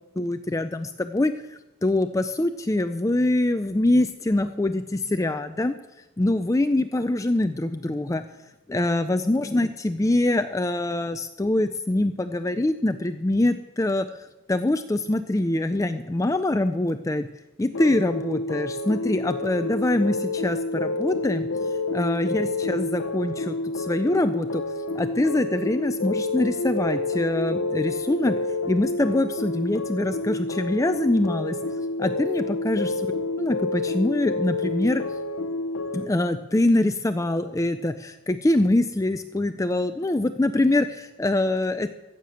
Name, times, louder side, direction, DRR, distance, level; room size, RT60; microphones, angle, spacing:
voice 1, 0.2-5.8 6.2-8.2 8.7-14.1 14.5-17.3 17.6-21.5 21.9-24.6 24.9-28.4 28.7-31.6 32.0-33.1 33.4-35.0 35.9-41.9, left 1 dB, 15° left, 9 dB, 0.4 m, -24 dB
sound 1, 17.7-36.1, left 2 dB, 75° left, 0.7 m, -29 dB
15.0 x 6.7 x 7.6 m, 1.0 s
head